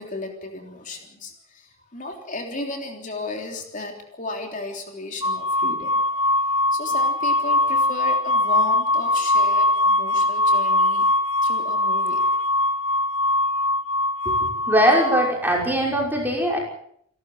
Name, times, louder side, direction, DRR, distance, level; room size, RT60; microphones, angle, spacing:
voice 1, 0.0-6.4 6.7-11.1 11.4-12.3, left 2 dB, 35° left, 3 dB, 3.5 m, -34 dB
sound 1, 5.2-15.3, left 1 dB, 75° left, 2.3 m, -21 dB
voice 2, 14.7-16.6, equal, 10° right, -1 dB, 5.8 m, -20 dB
29.0 x 13.0 x 7.9 m, 0.67 s
head